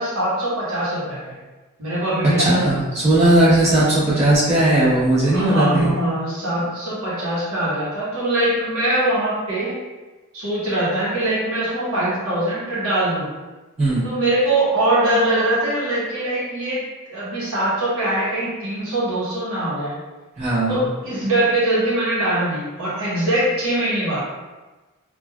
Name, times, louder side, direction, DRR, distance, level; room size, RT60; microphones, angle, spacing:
voice 1, 0.0-1.3 1.8-2.5 5.3-9.8 10.3-13.3 14.0-16.8 17.1-19.9 20.7-24.2, right 1 dB, 75° right, -9 dB, 1.1 m, -22 dB
voice 2, 2.4-5.9 13.8-14.0 20.4-20.9, right 1 dB, 30° right, -11 dB, 1.1 m, -17 dB
3.2 x 2.4 x 2.3 m, 1.2 s
head